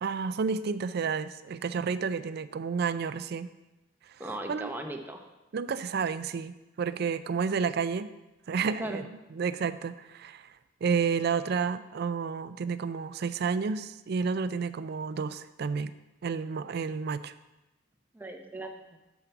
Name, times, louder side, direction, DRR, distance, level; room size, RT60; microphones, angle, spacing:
voice 1, 0.0-3.5 4.5-4.7 5.5-8.1 8.5-10.5 10.8-15.9 16.2-17.3, right 5 dB, 55° right, 14 dB, 0.4 m, -31 dB
voice 2, 4.2-5.2 8.8-9.0 18.1-19.0, right 1 dB, 10° right, 3 dB, 0.8 m, -38 dB
7.5 x 7.3 x 4.6 m, 1.0 s
head